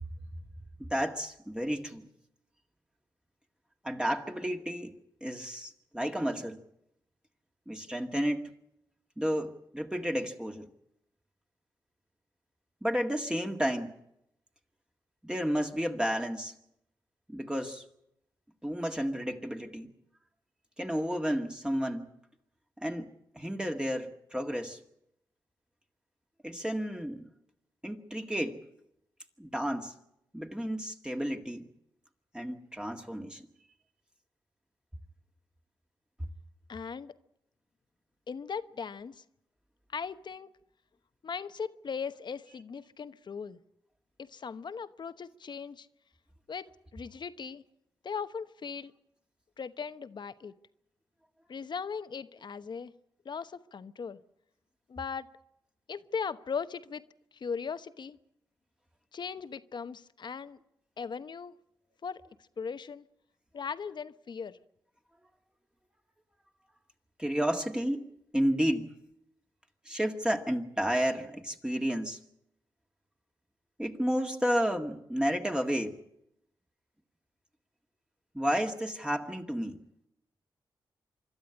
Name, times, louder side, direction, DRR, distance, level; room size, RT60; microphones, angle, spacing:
voice 1, 0.8-2.1 3.8-4.9 5.2-6.6 7.7-8.6 9.2-10.7 12.8-14.0 15.2-16.5 17.3-17.8 18.6-19.9 20.8-22.1 22.8-24.8 26.4-27.3 27.8-28.6 29.4-29.9 30.3-31.7 32.3-33.4 67.2-68.1 68.3-68.9 69.9-72.2 73.8-75.9 78.3-79.8, equal, 10° right, 3 dB, 1.9 m, -31 dB
voice 2, 36.7-37.2 38.3-39.2 39.9-40.5 41.2-43.6 44.2-45.9 46.5-46.7 46.9-47.6 48.0-48.9 49.6-50.5 51.5-52.9 53.2-54.2 54.9-55.3 55.9-57.0 57.3-58.2 59.1-60.6 61.0-61.6 62.0-62.2 62.6-63.1 63.5-64.6, left 6 dB, 60° left, 12 dB, 1.0 m, -38 dB
25.5 x 12.0 x 9.8 m, 0.81 s
cardioid pair, 55°, 9 cm